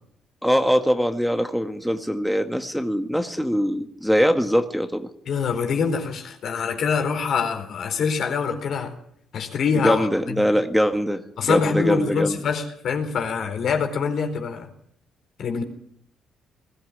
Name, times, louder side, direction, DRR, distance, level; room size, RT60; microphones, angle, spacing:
voice 1, 0.4-5.0 9.8-12.4, equal, ahead, 7 dB, 1.8 m, -22 dB
voice 2, 5.3-8.9 9.3-10.5 11.4-14.7 15.4-15.6, left 6 dB, 65° left, 5 dB, 4.2 m, -25 dB
20.5 x 13.5 x 9.9 m, 0.70 s
cardioid pair, 90°, 0 cm